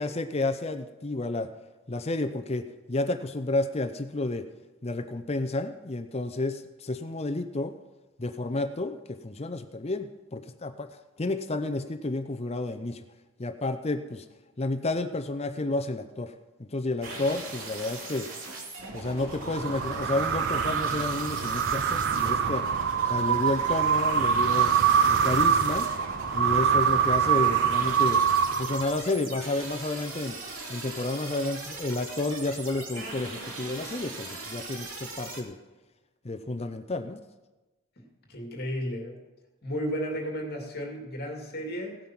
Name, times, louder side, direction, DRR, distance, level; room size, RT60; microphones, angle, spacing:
voice 1, 0.0-1.5 1.9-4.5 4.8-7.7 8.2-10.9 11.2-13.0 13.4-14.2 14.6-16.3 16.7-18.3 18.9-22.7 23.1-24.7 25.1-25.9 26.3-28.2 28.6-30.4 30.7-35.6 36.2-37.2, left 2 dB, 30° left, 8 dB, 0.6 m, -31 dB
sound 1, 17.0-35.4, right 2 dB, 70° right, 2.8 m, -40 dB
sound 2, 19.4-29.2, right 7 dB, 50° right, 0.5 m, -25 dB
voice 2, 38.3-39.2 39.6-42.0, equal, 45° left, 1 dB, 2.4 m, -33 dB
17.0 x 9.2 x 6.0 m, 1.1 s
head